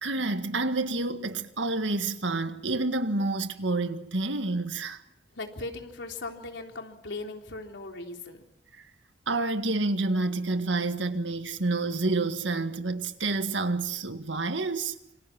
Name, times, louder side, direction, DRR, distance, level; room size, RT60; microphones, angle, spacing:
voice 1, 0.0-5.0 9.3-14.9, right 2 dB, 90° right, 1.8 m, -28 dB
voice 2, 5.4-8.4, left 2 dB, 80° left, 3.8 m, -38 dB
28.0 x 26.0 x 6.0 m
head